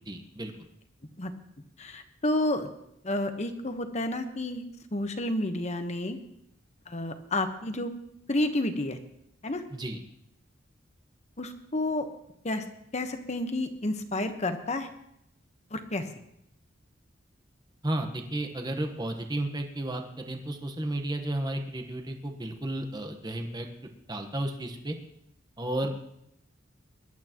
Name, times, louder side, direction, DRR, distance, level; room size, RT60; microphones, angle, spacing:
voice 1, 0.1-0.5 9.7-10.0 17.8-24.9 25.6-25.9, right 1 dB, 20° right, 5 dB, 1.2 m, -33 dB
voice 2, 1.8-2.7 3.0-4.6 4.9-6.2 6.9-7.9 8.3-9.0 9.4-9.6 11.4-12.1 12.4-12.6 12.9-14.9 15.7-16.0, left 1 dB, 35° left, 7 dB, 1.1 m, -30 dB
22.0 x 11.5 x 3.0 m, 0.78 s
head